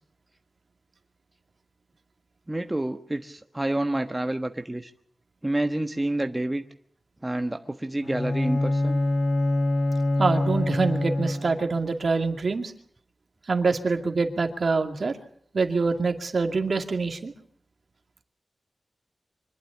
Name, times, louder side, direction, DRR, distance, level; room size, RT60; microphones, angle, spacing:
voice 1, 2.5-4.9 5.4-6.6 7.2-9.0, right 1 dB, 15° right, 6 dB, 1.3 m, -28 dB
Bowed string instrument, 8.0-11.8, left 1 dB, 85° left, 6.0 m, -25 dB
voice 2, 10.2-12.7 13.5-15.2 15.5-17.3, right 4 dB, 60° right, 5 dB, 2.4 m, -25 dB
25.5 x 11.5 x 10.0 m, 0.63 s
wide cardioid pair, 100°, 0 cm